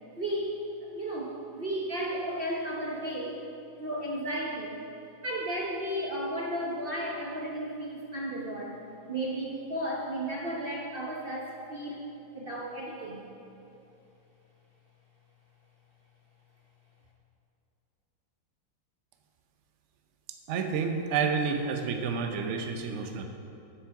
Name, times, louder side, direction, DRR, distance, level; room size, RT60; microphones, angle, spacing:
voice 1, 0.2-0.6 0.9-3.4 3.8-4.8 5.2-8.8 9.1-12.1 12.3-13.2, right 1 dB, 50° right, -3 dB, 0.7 m, -34 dB
voice 2, 20.5-23.2, right 5 dB, 90° right, 5 dB, 0.6 m, -29 dB
8.4 x 7.3 x 5.8 m, 2.8 s
omnidirectional pair, 2.2 m